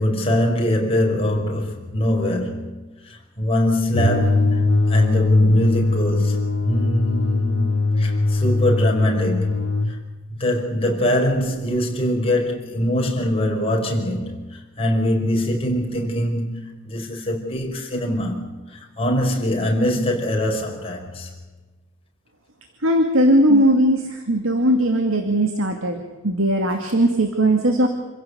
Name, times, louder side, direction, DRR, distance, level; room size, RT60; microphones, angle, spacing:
voice 1, 0.0-2.7 3.4-9.6 10.3-21.3, left 1 dB, 30° left, 5.4 m, -23 dB
sound 1, 3.9-9.9, left 2 dB, 90° left, 1.8 m, -20 dB
voice 2, 22.8-27.9, right 1 dB, 85° right, 2.3 m, -18 dB
27.5 x 16.0 x 8.4 m
head